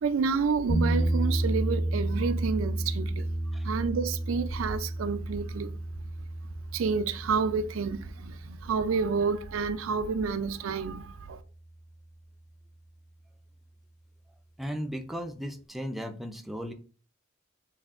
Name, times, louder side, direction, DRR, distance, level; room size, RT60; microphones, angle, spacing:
voice 1, 0.0-3.3 3.6-5.7 6.7-11.4, right 5 dB, 75° right, 0.4 m, -29 dB
sound 1, 0.7-10.7, right 1 dB, 35° left, 0.8 m, -32 dB
voice 2, 14.6-16.7, equal, ahead, 0.4 m, -36 dB
7.2 x 2.7 x 2.4 m
head